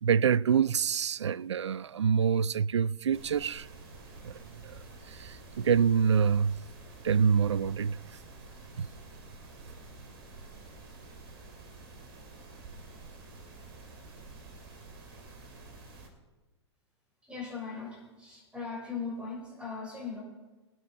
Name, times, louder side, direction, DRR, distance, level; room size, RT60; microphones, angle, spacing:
voice 1, 0.0-3.7 4.2-4.3 4.6-4.8 5.1-6.6 7.0-8.0 8.8-8.9, right 7 dB, 80° right, 0.4 m, -26 dB
sound 1, 3.1-16.1, right 3 dB, 60° right, 3.1 m, -49 dB
voice 2, 17.2-20.2, left 5 dB, 5° right, 6.1 m, -39 dB
22.5 x 9.0 x 4.5 m
hypercardioid pair, 105°, 15 cm